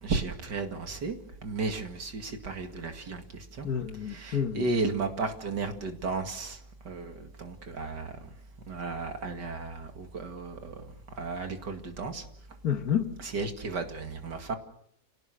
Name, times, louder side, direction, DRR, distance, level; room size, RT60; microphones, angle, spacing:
voice 1, 0.0-3.7 4.0-6.6 6.8-8.3 8.7-12.3 13.2-14.6, right 3 dB, 80° right, 2.8 m, -34 dB
voice 2, 3.6-4.6 12.6-13.1, left 8 dB, 60° left, 1.7 m, -29 dB
30.0 x 18.0 x 6.6 m
omnidirectional pair, 1.8 m